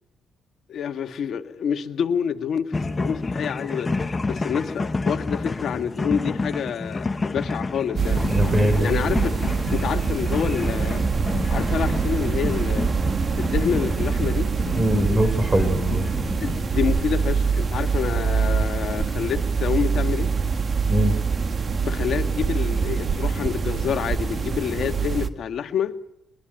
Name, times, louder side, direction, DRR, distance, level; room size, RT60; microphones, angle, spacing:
voice 1, 0.7-3.9 4.2-8.3 8.8-9.3 9.7-11.0 11.5-12.9 13.4-14.5 16.4-20.3 21.8-25.9, left 8 dB, 65° left, 1.8 m, -27 dB
sound 1, 2.7-16.6, left 3 dB, 25° left, 1.4 m, -29 dB
sound 2, 8.0-25.3, right 5 dB, 40° right, 1.7 m, -24 dB
voice 2, 8.3-8.9 14.7-16.0 20.9-21.1, equal, 20° right, 4.0 m, -21 dB
22.5 x 22.5 x 9.0 m
cardioid pair, 90°, 0 cm